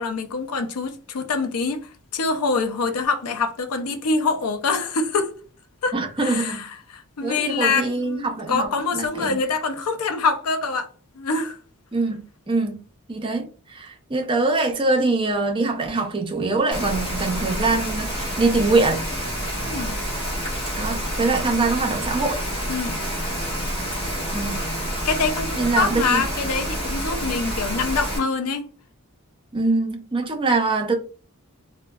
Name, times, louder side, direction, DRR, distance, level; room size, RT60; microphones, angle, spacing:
voice 1, 0.0-5.3 5.8-10.9 11.2-11.6 19.7-20.0 22.7-23.0 25.1-28.7, left 4 dB, 90° left, 0.5 m, -25 dB
voice 2, 5.9-6.6 7.2-8.7 8.9-9.4 11.9-12.2 12.5-12.8 13.1-19.0 20.7-22.4 24.3-24.6 25.6-26.2 29.5-30.9, right 3 dB, 25° right, 0.5 m, -23 dB
Rain, 16.7-28.2, equal, 25° left, 1.2 m, -28 dB
3.4 x 2.1 x 2.2 m
head